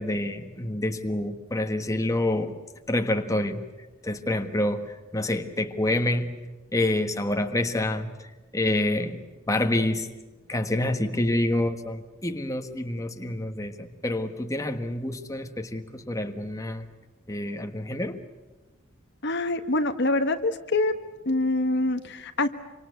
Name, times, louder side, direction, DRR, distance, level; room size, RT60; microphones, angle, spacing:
voice 1, 0.0-2.5 2.9-3.6 4.0-6.4 6.7-10.1 10.5-16.9 17.3-18.2, left 1 dB, 15° left, 6 dB, 1.5 m, -27 dB
voice 2, 19.2-21.0 21.2-22.5, left 2 dB, 55° left, 8 dB, 1.5 m, -25 dB
26.5 x 25.5 x 8.3 m, 1.2 s
head